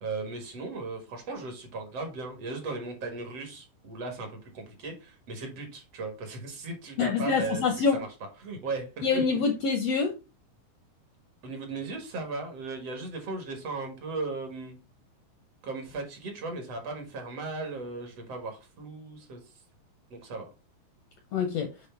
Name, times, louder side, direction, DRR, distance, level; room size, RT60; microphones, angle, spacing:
voice 1, 0.0-7.7 7.9-8.1 8.4-9.2 11.4-14.8 15.6-19.5 20.1-20.5, right 3 dB, 55° right, 4 dB, 2.3 m, -37 dB
voice 2, 7.0-8.0 9.0-10.1 21.3-21.7, left 5 dB, 75° left, 6 dB, 1.5 m, -25 dB
8.0 x 3.2 x 4.3 m, 0.30 s
omnidirectional pair, 3.7 m